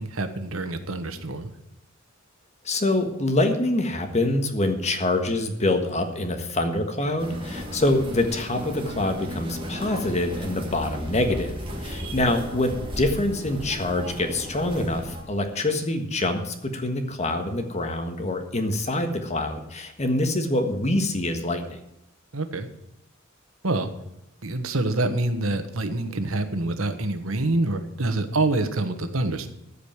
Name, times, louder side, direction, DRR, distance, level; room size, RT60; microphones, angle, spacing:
voice 1, 0.0-1.5 12.0-12.1 22.3-22.7 23.6-23.9 24.4-29.5, right 2 dB, 90° right, 9 dB, 1.3 m, -26 dB
voice 2, 2.6-12.7 12.9-21.8, left 2 dB, 35° left, 6 dB, 1.5 m, -25 dB
sound 1, 7.2-15.2, equal, 25° right, 2.0 m, -35 dB
14.0 x 5.2 x 8.8 m, 0.84 s
head